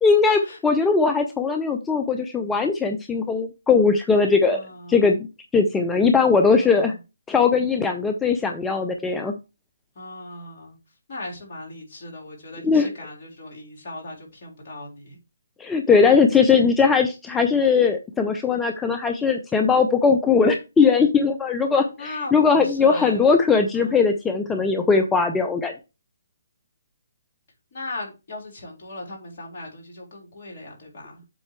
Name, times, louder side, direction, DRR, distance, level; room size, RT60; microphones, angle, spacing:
voice 1, 0.0-4.6 4.9-5.3 5.5-6.9 7.3-9.3 12.6-12.9 15.6-25.7, left 5 dB, 10° left, 0.6 m, -19 dB
voice 2, 4.4-5.1 6.5-6.9 10.0-10.8 11.1-15.2 15.9-16.1 22.0-23.3 23.6-24.0 27.7-31.2, left 2 dB, 45° left, 3.7 m, -38 dB
7.8 x 4.2 x 4.6 m
figure-of-eight pair, 150°, 0 cm